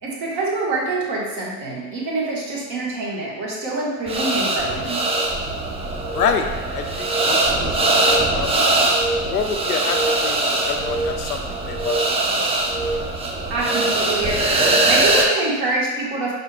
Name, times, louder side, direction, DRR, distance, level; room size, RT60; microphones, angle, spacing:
voice 1, 0.0-5.0 13.5-16.3, right 2 dB, 50° right, -4 dB, 1.4 m, -25 dB
sound 1, 4.1-15.2, right 2 dB, 15° right, 0.5 m, -21 dB
voice 2, 6.1-6.5 6.7-7.7 8.0-8.5 9.3-10.0 10.2-11.4 11.7-12.0, left 6 dB, 85° left, 5 dB, 0.5 m, -26 dB
5.1 x 3.9 x 2.2 m, 1.2 s
figure-of-eight pair, 75°, 44 cm